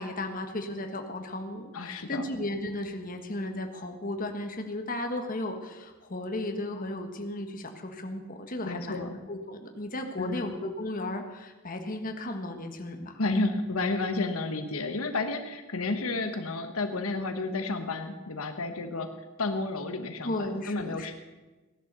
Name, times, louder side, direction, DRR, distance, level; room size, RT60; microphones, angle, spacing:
voice 1, 0.0-13.2 20.2-21.1, left 1 dB, 40° left, 4 dB, 1.5 m, -35 dB
voice 2, 1.7-2.3 8.6-9.2 10.2-10.5 13.2-19.1 19.4-21.1, left 3 dB, 85° left, 7 dB, 1.2 m, -31 dB
16.5 x 11.0 x 6.8 m, 1.2 s
head